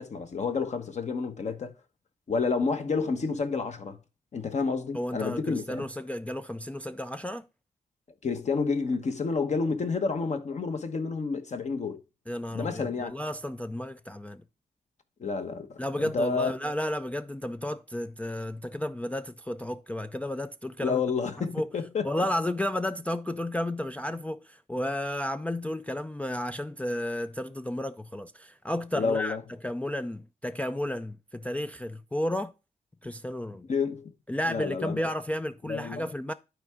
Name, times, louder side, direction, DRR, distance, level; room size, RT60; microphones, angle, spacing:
voice 1, 0.0-1.7 2.3-4.0 4.3-5.9 8.2-12.0 12.5-13.1 15.2-16.5 20.8-22.2 28.9-29.4 33.7-34.1 34.5-35.0 35.7-36.1, left 4 dB, 50° left, 1.2 m, -29 dB
voice 2, 4.9-7.5 12.3-14.4 15.8-21.0 21.4-21.7 22.0-29.4 29.6-32.5 33.0-33.7 34.3-36.3, left 1 dB, 10° left, 0.3 m, -32 dB
11.5 x 4.6 x 3.6 m
cardioid pair, 105°, 15 cm